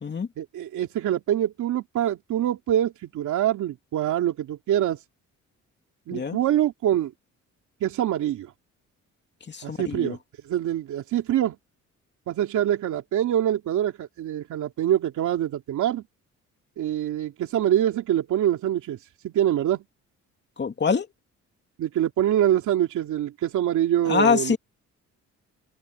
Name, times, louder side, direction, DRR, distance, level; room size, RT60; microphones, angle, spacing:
voice 1, 0.4-5.0 6.1-7.1 7.8-8.5 9.6-10.2 10.4-11.6 12.3-16.0 16.8-19.8 21.8-24.6, right 11 dB, 75° right, 2.8 m, -25 dB
voice 2, 9.5-10.2 20.6-21.1 24.0-24.6, left 6 dB, 35° left, 2.7 m, -24 dB
cardioid pair, 90°, 30 cm